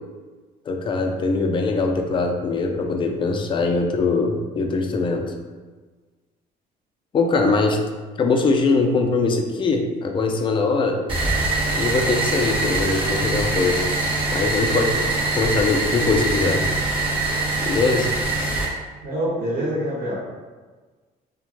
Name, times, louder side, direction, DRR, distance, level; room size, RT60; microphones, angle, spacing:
voice 1, 0.7-5.3 7.1-7.8 8.2-11.0 11.8-13.8 14.3-15.1 15.4-16.6 17.6-18.1, left 3 dB, 30° left, 3 dB, 0.4 m, -22 dB
sound 1, 11.1-18.6, right 2 dB, 30° right, 0.9 m, -23 dB
voice 2, 19.0-20.1, equal, 60° right, -5 dB, 1.0 m, -25 dB
3.0 x 2.1 x 2.5 m, 1.4 s
cardioid pair, 110°, 17 cm